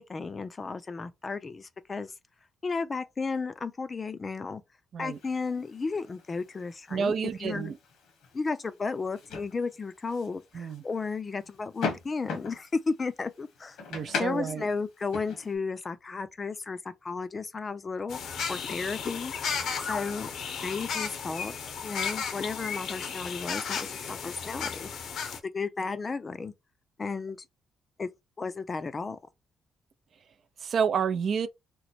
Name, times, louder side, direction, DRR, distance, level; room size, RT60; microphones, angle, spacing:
voice 1, 0.0-2.1 2.6-4.6 5.0-7.7 8.3-13.8 14.2-19.3 19.8-20.3 20.6-21.6 21.8-24.9 25.5-26.5 27.0-27.4 28.0-28.1 28.4-29.2, left 4 dB, 30° left, 0.4 m, -33 dB
sound 1, 5.1-15.6, left 4 dB, 85° left, 1.2 m, -41 dB
voice 2, 6.9-7.8 10.5-10.8 13.9-14.6 30.6-31.5, right 6 dB, 55° right, 0.4 m, -29 dB
sound 2, 18.1-25.4, left 6 dB, 70° left, 0.7 m, -34 dB
3.0 x 2.1 x 4.1 m
cardioid pair, 90°, 0 cm